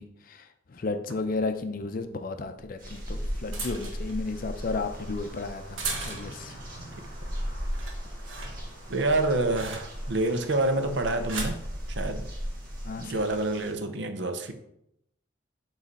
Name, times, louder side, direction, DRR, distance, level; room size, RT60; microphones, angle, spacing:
voice 1, 0.0-6.6 12.8-13.2, left 3 dB, 45° left, 0.5 m, -33 dB
sound 1, 1.3-1.4 2.6-6.6 7.0-7.3 7.6-10.2 10.9-11.6 12.5-12.8, right 2 dB, 85° right, 1.3 m, -38 dB
sound 2, 2.8-13.7, equal, 45° right, 1.7 m, -38 dB
sound 3, 4.2-13.0, equal, 30° right, 2.1 m, -50 dB
voice 2, 8.9-11.6 11.9-12.3 13.0-14.5, right 2 dB, 65° right, 0.6 m, -27 dB
7.4 x 3.2 x 4.1 m
head